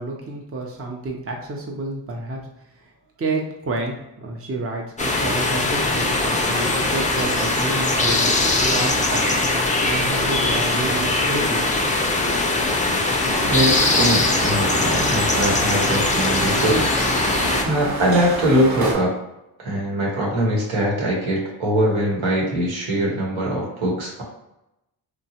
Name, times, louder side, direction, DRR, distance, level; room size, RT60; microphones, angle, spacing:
voice 1, 0.0-2.4 2.8-2.9 3.2-9.3 9.9-11.7, right 2 dB, 30° right, 1 dB, 0.6 m, -29 dB
sound 1, 5.0-17.6, left 2 dB, 15° left, 0.4 m, -21 dB
sound 2, 13.4-18.9, right 2 dB, 50° right, 0.9 m, -28 dB
voice 2, 13.5-16.8 17.6-19.1 19.6-24.2, equal, 80° right, -3 dB, 1.1 m, -22 dB
2.9 x 2.2 x 2.8 m, 0.88 s
cardioid pair, 50°, 48 cm